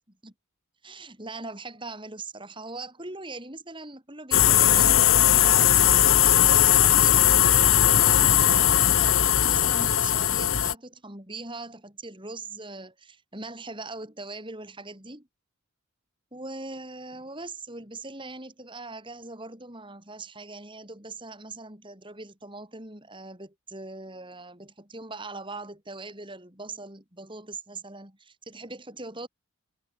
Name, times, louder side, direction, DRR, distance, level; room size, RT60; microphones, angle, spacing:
voice 1, 0.8-5.8 6.3-7.1 7.6-15.3 16.3-29.3, right 2 dB, 20° right, 5.5 m, -41 dB
sound 1, 4.3-10.7, left 11 dB, 65° left, 1.2 m, -19 dB
head